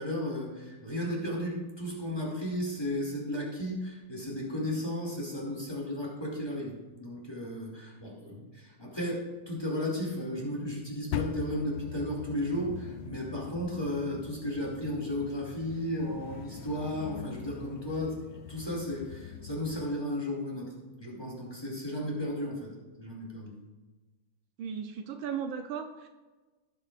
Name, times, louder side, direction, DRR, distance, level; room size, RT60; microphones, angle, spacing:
voice 1, 0.0-18.1 18.5-22.7 23.0-23.5, left 1 dB, 10° left, -3 dB, 2.3 m, -34 dB
sound 1, 11.1-19.9, left 8 dB, 85° left, 1.5 m, -42 dB
voice 2, 24.6-26.1, right 7 dB, 75° right, 6 dB, 1.5 m, -36 dB
17.0 x 7.9 x 2.5 m, 1.2 s
omnidirectional pair, 2.3 m